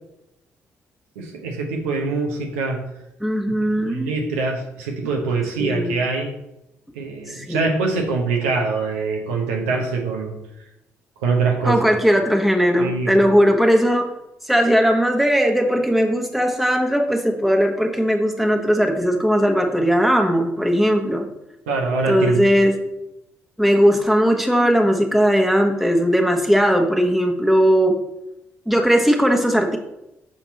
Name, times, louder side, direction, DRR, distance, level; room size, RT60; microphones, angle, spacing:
voice 1, 1.2-2.8 3.8-6.4 6.9-10.4 11.2-11.8 12.8-13.1 21.7-22.4, right 4 dB, 85° right, 1 dB, 0.8 m, -23 dB
voice 2, 3.2-4.1 5.6-5.9 7.3-7.8 11.6-14.1 14.4-21.3 22.1-22.7 23.6-28.0 28.7-29.8, equal, ahead, 2 dB, 1.3 m, -18 dB
6.2 x 4.3 x 4.2 m, 0.89 s
hypercardioid pair, 50°, 7 cm